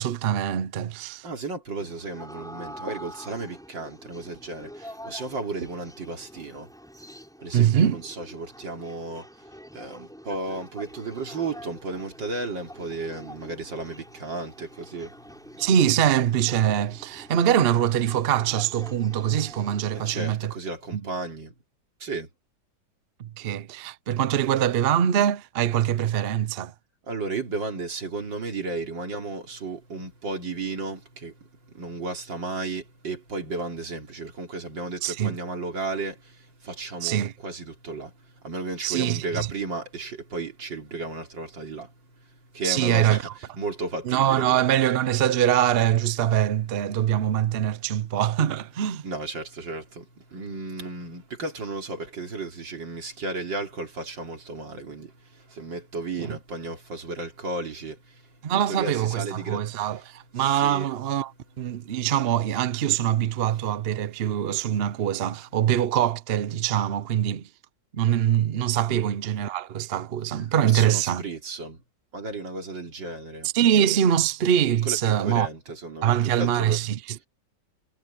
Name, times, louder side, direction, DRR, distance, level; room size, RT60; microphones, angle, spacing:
voice 1, 0.0-1.3 7.5-8.0 15.6-20.5 20.9-21.0 23.2-26.7 35.0-35.4 37.0-37.3 38.8-39.5 42.6-43.3 44.0-49.0 56.2-56.4 58.4-61.3 61.6-67.5 67.9-71.2 73.5-75.5 76.0-77.2, right 10 dB, 60° right, 0.6 m, -23 dB
voice 2, 1.2-6.7 7.4-9.3 9.7-15.2 20.0-21.5 22.0-22.3 27.1-38.1 38.4-41.9 42.5-43.3 43.6-44.6 49.0-59.7 60.4-60.9 68.9-69.0 70.6-71.8 72.1-73.5 74.9-76.8, right 3 dB, 80° right, 3.8 m, -34 dB
sound 1, 1.8-20.3, equal, ahead, 5.6 m, -46 dB
omnidirectional pair, 2.0 m